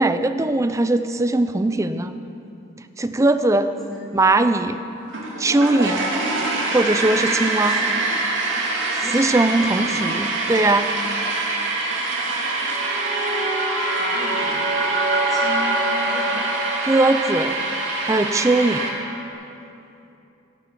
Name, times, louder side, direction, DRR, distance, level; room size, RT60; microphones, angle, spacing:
voice 1, 0.0-2.1 3.0-3.7 4.1-4.8 5.4-6.1 6.7-7.8 9.1-10.9 16.8-17.6 18.0-18.8, right 2 dB, 15° right, 10 dB, 0.4 m, -20 dB
sound 1, 5.1-18.9, right 3 dB, 70° right, 2.1 m, -25 dB
voice 2, 7.4-8.0 8.9-10.0 14.0-14.7 15.3-16.5, right 1 dB, ahead, -7 dB, 2.7 m, -36 dB
sound 2, 12.4-19.3, right 1 dB, 50° right, 2.2 m, -26 dB
17.0 x 7.0 x 5.8 m, 2.8 s
head